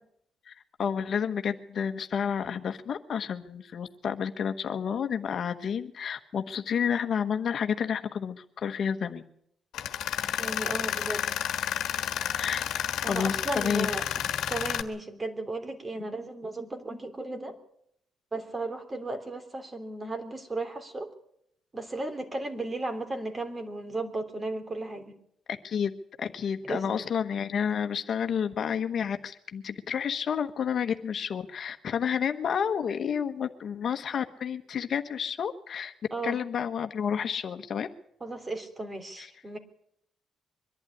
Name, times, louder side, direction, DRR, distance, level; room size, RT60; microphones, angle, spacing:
voice 1, 0.8-9.2 11.1-11.3 12.3-12.7 13.0-13.9 25.6-25.9 26.2-35.9 36.2-37.9 39.2-39.3, left 7 dB, 55° left, 8 dB, 1.3 m, -30 dB
Tools, 9.7-14.8, left 10 dB, 80° left, 1.5 m, -31 dB
voice 2, 10.4-11.6 13.0-14.0 14.5-17.6 18.3-21.1 21.7-25.2 26.6-26.8 36.1-36.4 38.2-39.6, right 2 dB, 25° right, 6 dB, 3.3 m, -35 dB
23.0 x 11.5 x 9.8 m, 0.73 s
cardioid pair, 90°, 0 cm